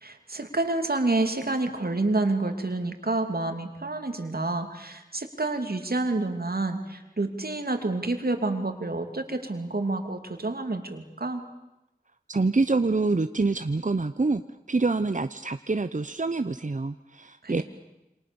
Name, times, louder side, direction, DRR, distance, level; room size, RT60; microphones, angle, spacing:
voice 1, 0.0-11.4 17.4-17.6, right 2 dB, 85° right, 6 dB, 2.9 m, -28 dB
voice 2, 12.3-14.4 14.7-17.6, right 3 dB, 55° right, 10 dB, 0.9 m, -26 dB
28.0 x 26.5 x 7.1 m, 0.95 s
wide cardioid pair, 45°, 15 cm